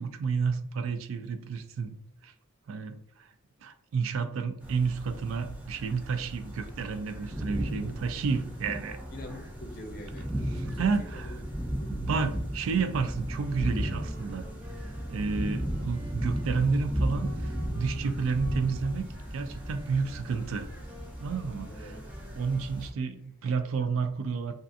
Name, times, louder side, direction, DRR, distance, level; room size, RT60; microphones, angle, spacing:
voice 1, 0.0-2.0 2.2-2.3 2.7-3.3 3.6-9.0 10.8-11.3 11.9-14.5 15.1-20.7 21.2-21.9 22.4-24.5, right 5 dB, 80° right, 9 dB, 0.3 m, -31 dB
sound 1, 4.6-22.9, equal, 10° right, 0.4 m, -35 dB
voice 2, 9.1-11.4 11.7-12.0 19.9-20.3 21.6-22.0, left 1 dB, 45° left, 2 dB, 0.5 m, -45 dB
Wind instrument woodwind instrument, 13.3-22.8, right 1 dB, 40° right, 0.7 m, -52 dB
2.5 x 2.3 x 2.5 m, 0.65 s
head